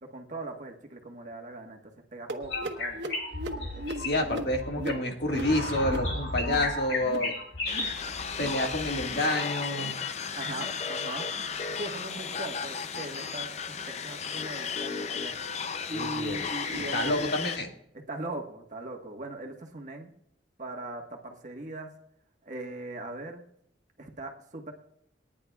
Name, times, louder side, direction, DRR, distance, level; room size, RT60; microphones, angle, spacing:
voice 1, 0.0-3.0 3.5-4.3 10.3-11.3 11.8-15.3 15.9-17.3 18.1-20.1 20.6-21.9 22.4-23.4 24.0-24.7, right 2 dB, 45° right, 3 dB, 1.4 m, -40 dB
sound 1, 2.3-7.3 7.6-8.0 8.3-8.7 9.0-9.3 9.7-10.1 10.5-10.8 11.2-11.5 12.0-12.3 12.9-13.1 13.7-13.9 14.6-14.7 15.5-15.6, right 1 dB, 80° right, 1.3 m, -40 dB
sound 2, 2.4-9.1, left 2 dB, 85° left, 3.6 m, -34 dB
voice 2, 4.0-7.3 8.4-9.9 15.9-17.7, left 1 dB, 60° left, 2 dB, 1.8 m, -29 dB
sound 3, 7.7-17.6, left 6 dB, 40° left, 0.5 m, -34 dB
28.5 x 9.9 x 2.4 m, 0.74 s
head